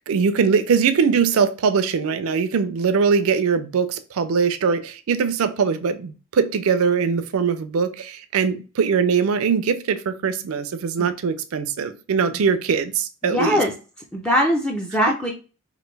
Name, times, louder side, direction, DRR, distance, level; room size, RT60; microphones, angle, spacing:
voice 1, 0.1-13.6 15.1-15.2, right 6 dB, 70° right, 0.4 m, -21 dB
voice 2, 13.2-13.7 14.1-15.3, equal, 5° left, 0.4 m, -21 dB
3.0 x 2.5 x 3.2 m
head